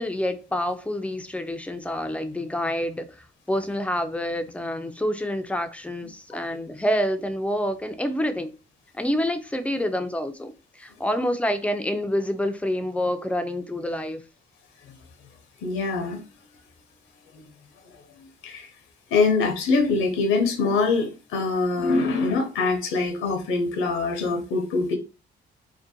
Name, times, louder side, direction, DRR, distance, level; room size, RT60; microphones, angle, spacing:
voice 1, 0.0-8.5 8.9-14.2, equal, 5° left, 0.3 m, -27 dB
voice 2, 15.6-16.2 17.4-17.5 18.4-18.7 19.1-25.0, left 3 dB, 85° left, 0.6 m, -23 dB
2.5 x 2.1 x 2.6 m
cardioid pair, 90°, 20 cm